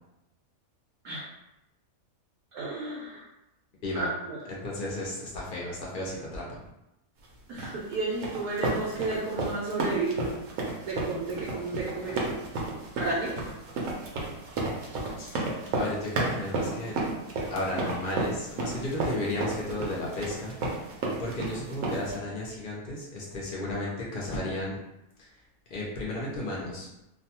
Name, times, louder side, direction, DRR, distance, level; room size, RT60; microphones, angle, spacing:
voice 1, 2.5-3.3 3.9-4.4 7.5-10.2 10.8-12.3 13.0-13.5, right 3 dB, 90° right, -4 dB, 1.1 m, -32 dB
voice 2, 4.5-6.6 15.2-17.0 17.5-24.8 25.2-25.4 25.7-26.9, left 1 dB, 60° left, -4 dB, 0.5 m, -34 dB
sound 1, 7.6-22.1, right 2 dB, 70° right, 0.9 m, -32 dB
2.6 x 2.2 x 2.7 m, 0.91 s
omnidirectional pair, 1.5 m